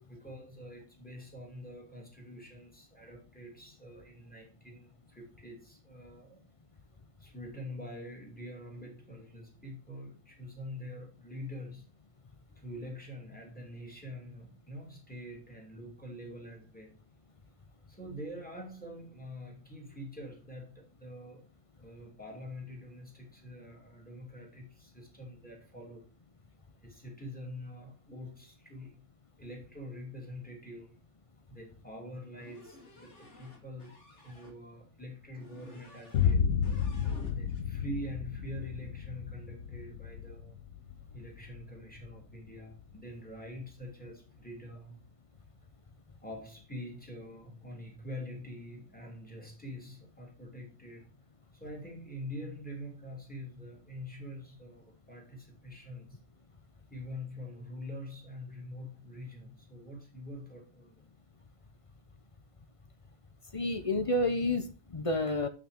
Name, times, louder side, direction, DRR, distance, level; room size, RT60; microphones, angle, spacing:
voice 1, 0.1-6.4 7.2-11.9 12.6-17.0 17.9-21.4 21.8-26.1 26.8-29.1 29.4-31.0 31.5-36.5 37.3-40.6 41.1-45.0 46.2-51.1 51.5-56.2 56.9-61.0, left 1 dB, 5° left, 2.8 m, -45 dB
sound 1, 32.4-34.6 35.4-36.4 36.6-37.6, left 1 dB, 50° left, 2.5 m, -54 dB
Boom, 36.1-44.0, left 7 dB, 70° left, 1.2 m, -33 dB
voice 2, 63.5-65.5, left 2 dB, 30° left, 0.7 m, -30 dB
7.8 x 6.2 x 5.0 m
omnidirectional pair, 1.5 m